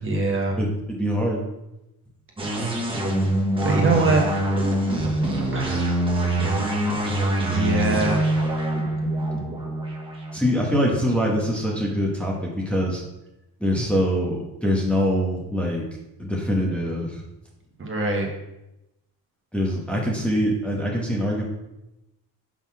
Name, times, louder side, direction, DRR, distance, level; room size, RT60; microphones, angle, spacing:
voice 1, 0.0-0.6 3.6-4.2 5.5-6.0 7.5-8.3 17.8-18.3, right 3 dB, 30° right, 0 dB, 1.4 m, -23 dB
voice 2, 0.6-1.4 10.3-13.0 13.6-15.8 16.2-17.2 19.5-21.4, equal, 5° left, -4 dB, 1.3 m, -24 dB
sound 1, 2.4-11.8, right 1 dB, 15° right, 1.3 m, -25 dB
5.7 x 4.2 x 6.1 m, 0.91 s
cardioid pair, 130°, 39 cm